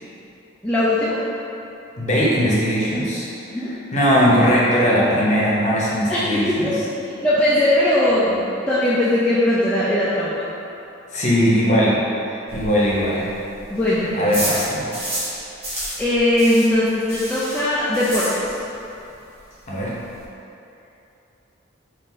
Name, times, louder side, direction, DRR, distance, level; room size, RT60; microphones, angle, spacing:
voice 1, 0.6-1.2 3.5-3.7 6.1-6.8 7.2-10.5 13.7-14.1 15.3-15.4 16.0-18.3, left 1 dB, 5° left, -10 dB, 0.4 m, -19 dB
voice 2, 2.0-3.3 3.9-6.7 11.1-12.0 12.2-13.3 14.1-14.8 19.7-19.9, equal, 35° left, -6 dB, 0.7 m, -19 dB
sound 1, 12.5-15.4 15.6-18.8 19.1-19.2 19.5-19.6 19.8-20.3, equal, 30° right, 1.2 m, -30 dB
3.8 x 2.5 x 4.1 m, 2.8 s
head